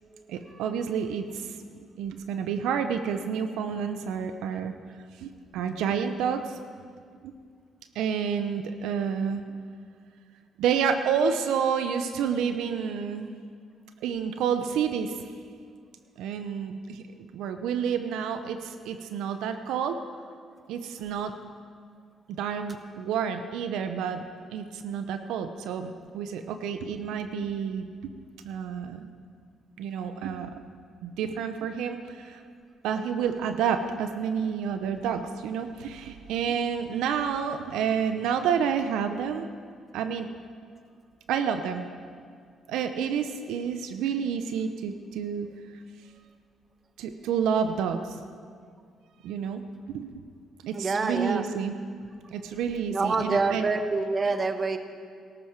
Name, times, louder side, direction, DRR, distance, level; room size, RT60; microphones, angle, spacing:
voice 1, 0.3-1.6 2.0-4.7 5.2-6.6 7.2-7.4 7.9-9.4 10.6-13.4 14.0-15.3 16.2-17.0 17.3-20.0 20.7-21.3 22.4-24.2 24.5-28.1 28.4-29.1 29.8-30.6 31.0-32.4 32.8-39.5 39.9-40.3 41.3-41.9 42.7-45.5 47.0-48.2 49.2-49.6 49.9-50.2 50.6-51.8 52.3-53.7 54.3-54.4, right 7 dB, 90° right, 8 dB, 0.7 m, -29 dB
voice 2, 50.7-51.4 52.9-54.8, right 3 dB, 35° right, 8 dB, 1.1 m, -26 dB
18.0 x 13.0 x 4.6 m, 2.1 s
cardioid pair, 90°, 0 cm